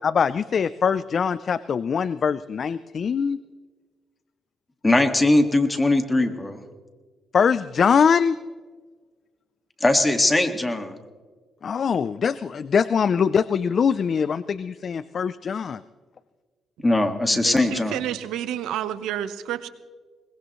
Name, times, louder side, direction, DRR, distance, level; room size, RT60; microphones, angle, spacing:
voice 1, 0.0-3.4 7.3-8.4 11.6-15.8, left 6 dB, 50° left, 15 dB, 0.4 m, -22 dB
voice 2, 4.8-6.6 9.8-10.9 16.8-18.0, left 2 dB, 15° left, 7 dB, 1.8 m, -20 dB
voice 3, 17.3-19.7, right 11 dB, 90° right, 12 dB, 0.9 m, -30 dB
22.5 x 20.0 x 3.1 m, 1.4 s
cardioid pair, 90°, 0 cm